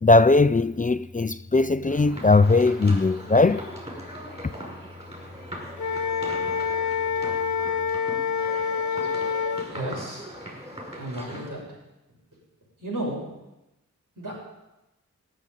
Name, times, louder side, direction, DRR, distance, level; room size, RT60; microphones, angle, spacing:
voice 1, 0.0-3.6, left 3 dB, 25° left, 0.5 m, -19 dB
sound 1, 1.9-11.5, equal, 20° right, 5.7 m, -40 dB
Wind instrument woodwind instrument, 5.8-9.7, left 6 dB, 70° left, 0.8 m, -27 dB
voice 2, 9.7-10.2 10.9-11.7 12.8-13.3 14.2-14.3, right 1 dB, 80° right, 6.1 m, -33 dB
16.5 x 6.9 x 9.3 m
wide cardioid pair, 55°, 31 cm